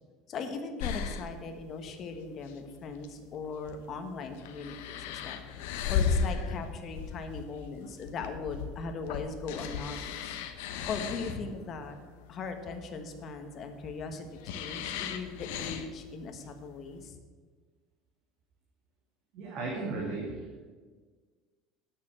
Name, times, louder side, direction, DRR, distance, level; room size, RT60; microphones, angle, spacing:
voice 1, 0.3-10.2 10.9-12.0 12.3-17.2, left 4 dB, 35° left, 6 dB, 1.3 m, -39 dB
sound 1, 0.8-17.1, left 6 dB, 85° left, 1.0 m, -36 dB
voice 2, 19.3-20.6, right 3 dB, 50° right, -2 dB, 2.2 m, -35 dB
9.6 x 6.9 x 7.4 m, 1.5 s
cardioid pair, 150°, 0 cm